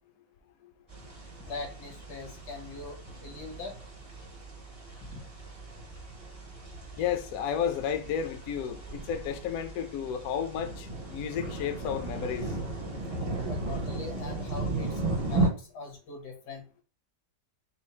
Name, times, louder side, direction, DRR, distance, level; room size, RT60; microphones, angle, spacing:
sound 1, 0.9-15.5, right 2 dB, 35° right, 0.6 m, -36 dB
voice 1, 1.4-3.0 3.2-3.8 5.0-5.2 13.5-15.0 15.3-16.7, left 4 dB, 85° left, 1.8 m, -41 dB
voice 2, 7.0-12.6, left 8 dB, 70° left, 0.9 m, -32 dB
4.5 x 2.0 x 4.2 m
omnidirectional pair, 1.8 m